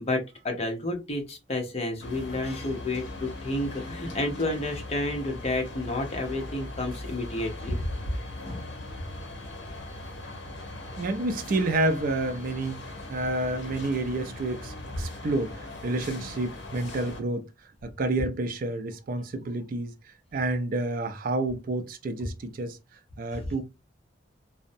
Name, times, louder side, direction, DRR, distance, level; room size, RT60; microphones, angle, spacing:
voice 1, 0.0-7.9 8.4-8.7, left 2 dB, 35° left, 0.7 m, -30 dB
sound 1, 2.0-17.2, left 2 dB, 65° left, 0.8 m, -40 dB
voice 2, 10.9-12.8 13.1-17.5 17.8-19.9 20.3-22.8 23.2-23.6, right 2 dB, 50° right, 0.4 m, -29 dB
2.5 x 2.0 x 2.6 m
head